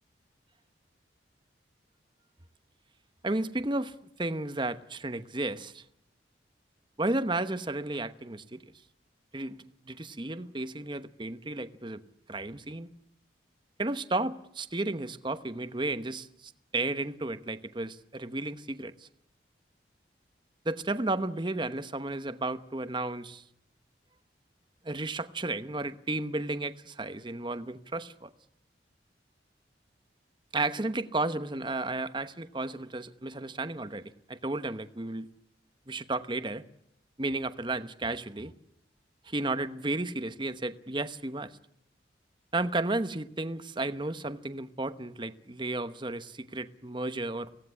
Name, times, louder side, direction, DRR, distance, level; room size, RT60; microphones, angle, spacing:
voice 1, 3.2-5.8 7.0-8.6 9.3-12.0 12.3-12.9 13.8-19.1 20.6-23.4 24.8-28.3 30.5-35.3 35.9-36.6 37.2-38.5 39.2-41.5 42.5-47.5, right 2 dB, 25° right, 11 dB, 1.0 m, -33 dB
25.0 x 17.5 x 9.9 m, 0.79 s
head